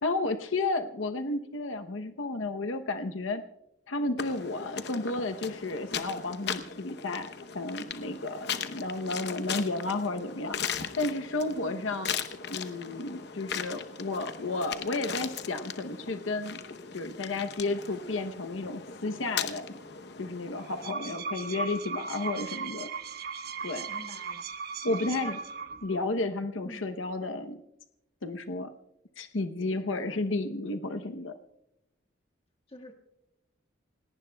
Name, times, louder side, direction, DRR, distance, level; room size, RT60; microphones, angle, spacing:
voice 1, 0.0-3.4 3.9-10.6 11.0-12.1 12.5-16.6 16.9-19.7 20.2-22.9 23.6-23.9 24.8-25.4 25.8-27.6 28.2-28.7 29.2-31.3, left 2 dB, 85° left, 7 dB, 0.8 m, -32 dB
sound 1, 4.2-20.9, left 7 dB, 55° left, 0.9 m, -38 dB
sound 2, 20.6-26.0, right 5 dB, 50° right, 1.0 m, -37 dB
voice 2, 23.9-24.5 25.0-25.5 26.6-26.9 29.7-30.2 32.7-32.9, left 2 dB, 30° left, 1 dB, 1.7 m, -48 dB
28.5 x 18.0 x 2.3 m, 0.86 s
head